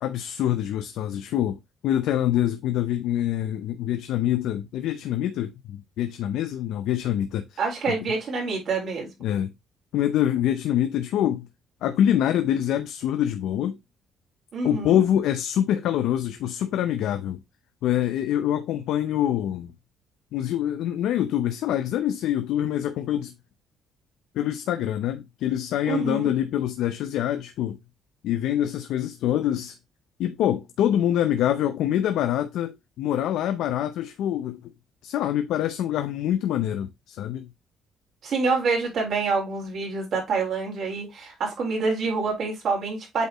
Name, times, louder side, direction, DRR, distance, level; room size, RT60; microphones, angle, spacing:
voice 1, 0.0-7.6 7.9-8.0 9.2-9.5 9.9-11.5 11.8-13.8 14.6-17.4 17.8-19.7 20.3-23.3 24.3-27.8 28.2-29.8 30.2-34.7 35.0-37.5, left 11 dB, 80° left, 0.6 m, -25 dB
voice 2, 7.6-9.1 14.5-15.0 25.9-26.3 38.2-43.3, right 4 dB, 50° right, 3.9 m, -27 dB
8.1 x 4.4 x 3.0 m
cardioid pair, 135°, 0 cm